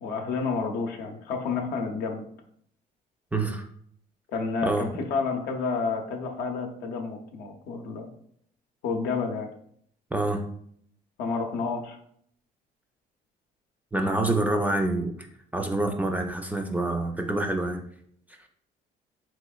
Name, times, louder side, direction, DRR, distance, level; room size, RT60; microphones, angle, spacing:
voice 1, 0.0-2.2 4.3-8.1 8.8-9.5 11.2-12.0, left 4 dB, 80° left, 3 dB, 0.6 m, -30 dB
voice 2, 3.3-3.6 4.6-4.9 10.1-10.4 13.9-15.1 15.5-17.8, right 2 dB, 10° right, 4 dB, 0.4 m, -26 dB
3.5 x 3.0 x 2.3 m, 0.66 s
cardioid pair, 110°, 17 cm